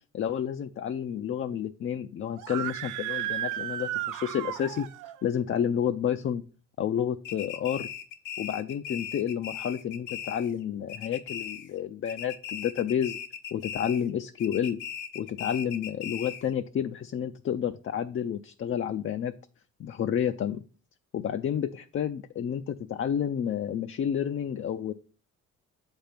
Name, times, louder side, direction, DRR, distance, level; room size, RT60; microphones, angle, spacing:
voice 1, 0.1-4.9 5.2-6.4 6.8-7.9 8.4-13.2 13.5-14.8 15.1-19.3 19.8-20.6 21.1-24.9, left 9 dB, 45° left, 9 dB, 0.5 m, -30 dB
Screaming, 2.4-5.2, right 13 dB, 90° right, 0.5 m, -34 dB
sound 1, 7.2-10.6 10.9-11.8 12.1-14.1 14.4-16.5, left 9 dB, 90° left, 1.0 m, -38 dB
7.8 x 3.5 x 5.7 m, 0.39 s
cardioid pair, 90°, 30 cm